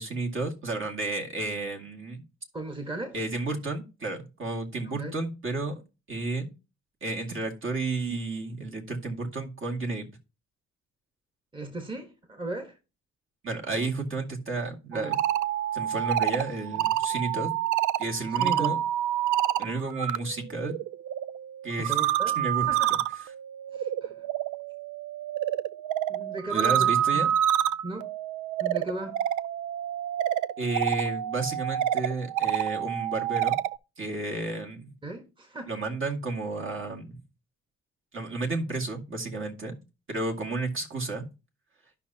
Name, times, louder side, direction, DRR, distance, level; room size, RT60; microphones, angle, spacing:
voice 1, 0.0-2.2 3.1-5.8 6.1-6.5 7.0-10.1 13.4-15.2 15.7-17.5 18.0-18.8 19.6-20.8 21.6-22.0 22.4-23.0 26.5-27.3 30.6-33.6 34.0-34.9 35.7-37.2 38.1-39.8 40.1-41.3, right 3 dB, 40° right, 2.2 m, -32 dB
voice 2, 2.5-3.2 4.8-5.2 11.5-12.8 14.9-15.2 18.4-18.8 21.8-22.4 22.7-22.9 23.7-24.3 26.1-27.3 27.8-28.1 28.6-29.2 35.0-35.7, right 2 dB, 15° right, 1.5 m, -36 dB
sound 1, 14.9-20.2 20.5-33.8, right 11 dB, 85° right, 0.5 m, -28 dB
12.5 x 5.6 x 2.8 m
cardioid pair, 90°, 30 cm